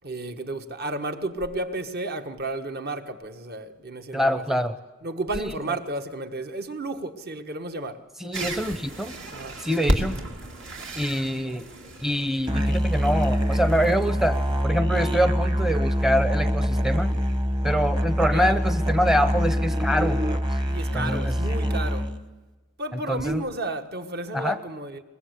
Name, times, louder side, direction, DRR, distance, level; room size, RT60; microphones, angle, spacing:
voice 1, 0.0-4.6 5.0-8.0 9.3-9.9 11.7-11.8 18.3-18.6 20.6-22.1 22.8-25.0, right 2 dB, 55° right, 1.5 m, -32 dB
voice 2, 4.1-4.8 5.4-5.6 8.2-9.2 9.6-10.2 11.0-11.7 12.0-17.1 17.6-20.4 20.9-21.3 23.1-23.4 24.3-24.6, equal, ahead, 0.7 m, -25 dB
sound 1, 8.3-14.6, right 1 dB, 70° right, 3.0 m, -33 dB
Musical instrument, 12.5-22.3, equal, 25° right, 1.2 m, -24 dB
23.0 x 21.5 x 8.2 m
head